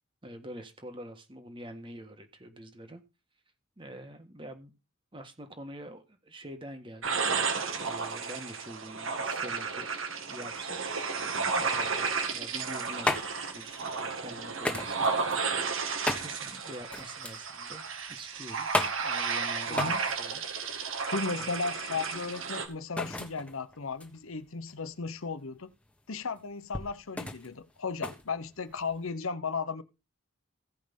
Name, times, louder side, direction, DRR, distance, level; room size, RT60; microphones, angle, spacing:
voice 1, 0.2-3.0 3.8-4.7 5.1-9.9 10.3-10.8 11.6-17.8 18.1-18.7 19.0-20.4 20.7-21.5, equal, 25° right, 1.6 m, -46 dB
sound 1, 7.0-22.7, right 5 dB, 80° right, 1.9 m, -33 dB
sound 2, 12.5-29.1, left 2 dB, 5° left, 1.4 m, -37 dB
voice 2, 19.7-20.0 21.1-25.7 26.1-29.8, left 4 dB, 90° left, 1.0 m, -35 dB
16.0 x 5.4 x 5.3 m
head